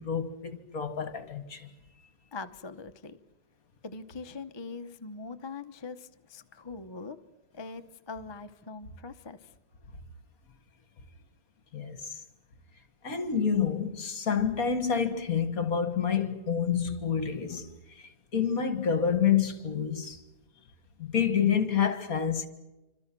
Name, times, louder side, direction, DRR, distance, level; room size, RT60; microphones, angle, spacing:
voice 1, 0.0-1.7 11.7-12.2 13.0-20.2 21.0-22.5, left 7 dB, 45° left, 2.2 m, -28 dB
voice 2, 2.3-3.2 3.8-7.2 7.5-9.5, left 4 dB, 25° left, 0.5 m, -42 dB
27.5 x 25.5 x 6.1 m
omnidirectional pair, 2.2 m